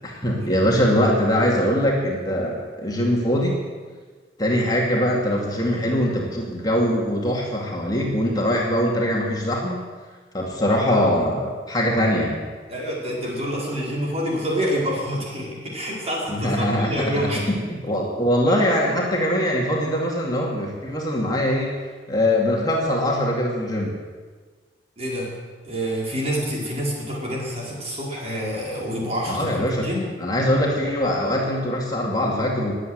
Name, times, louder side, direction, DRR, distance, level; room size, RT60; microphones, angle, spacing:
voice 1, 0.0-3.7 4.4-9.9 10.3-12.4 16.3-21.8 22.1-23.9 29.3-29.9 30.2-32.7, equal, 25° left, -2 dB, 2.5 m, -22 dB
voice 2, 12.7-17.4 18.5-18.6 25.0-25.3 25.6-30.1, equal, 35° right, -4 dB, 5.0 m, -27 dB
21.0 x 8.4 x 8.1 m, 1.4 s
head